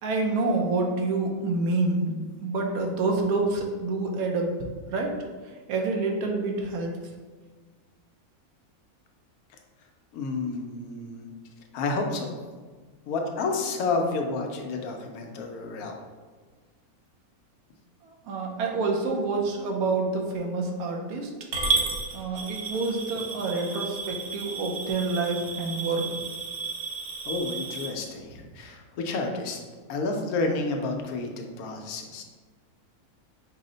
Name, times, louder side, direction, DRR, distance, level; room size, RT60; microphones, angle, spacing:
voice 1, 0.0-2.1 2.4-4.5 4.9-5.2 5.7-6.9 18.0-21.3 22.1-26.2, right 3 dB, 90° right, 1 dB, 1.2 m, -27 dB
voice 2, 10.1-11.3 11.7-12.4 13.1-16.0 27.2-29.6 29.9-32.2, left 3 dB, 80° left, 2 dB, 1.1 m, -30 dB
Coin (dropping) / Glass, 21.5-27.9, right 4 dB, 55° right, 0.7 m, -32 dB
5.2 x 2.1 x 3.8 m, 1.4 s
omnidirectional pair, 1.5 m